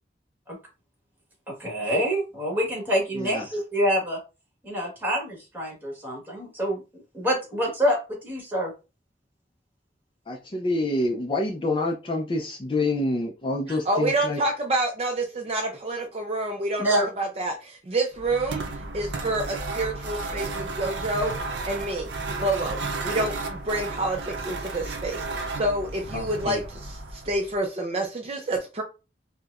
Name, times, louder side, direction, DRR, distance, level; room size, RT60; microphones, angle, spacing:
voice 1, 1.5-4.2 4.6-8.7 13.7-13.8 16.8-17.1, equal, 10° right, 1.3 m, -26 dB
voice 2, 3.1-3.5 10.3-14.4 26.1-26.6, left 2 dB, 30° left, 0.4 m, -27 dB
voice 3, 13.9-21.4 21.7-22.1 22.4-28.8, right 2 dB, 35° right, 0.4 m, -28 dB
sound 1, 18.1-27.5, right 3 dB, 90° right, 0.6 m, -33 dB
4.4 x 2.1 x 2.4 m
head